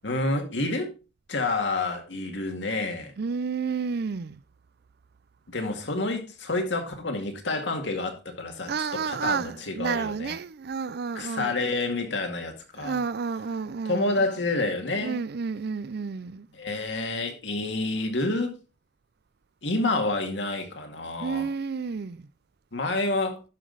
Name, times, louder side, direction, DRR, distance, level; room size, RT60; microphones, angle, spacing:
voice 1, 0.0-0.9 1.3-3.1 5.5-8.7 9.0-10.4 11.2-13.0 13.9-15.2 16.5-18.6 19.6-21.5 22.7-23.4, left 2 dB, 75° left, 2.0 m, -28 dB
voice 2, 3.2-4.4 8.7-11.6 12.8-14.2 15.0-16.5 21.2-22.3, right 5 dB, 60° right, 0.5 m, -31 dB
11.0 x 6.0 x 3.9 m
head